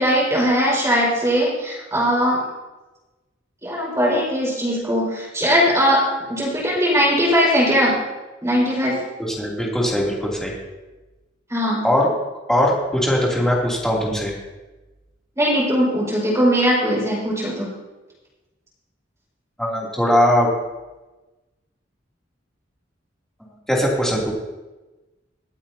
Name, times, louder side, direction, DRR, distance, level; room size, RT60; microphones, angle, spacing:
voice 1, 0.0-2.4 3.6-6.0 6.3-7.9 8.4-9.0 11.5-11.8 15.4-17.7, equal, 15° right, -6 dB, 4.9 m, -19 dB
voice 2, 9.2-10.5 11.8-12.1 12.5-14.3 19.6-20.5 23.7-24.3, equal, 5° left, -4 dB, 2.7 m, -20 dB
24.0 x 8.6 x 2.8 m, 1.1 s
head